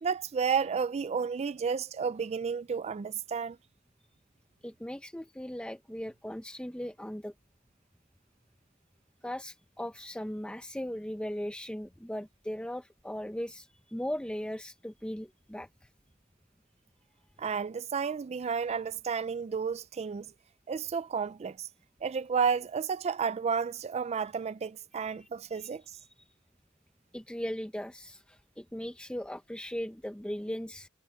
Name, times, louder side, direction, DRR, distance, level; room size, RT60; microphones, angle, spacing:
voice 1, 0.0-3.6 17.4-20.3 20.7-21.7 22.0-25.8, right 6 dB, 30° right, 0.3 m, -31 dB
voice 2, 4.6-7.3 9.2-15.7 25.5-25.7 27.1-30.9, equal, 5° left, 0.7 m, -38 dB
head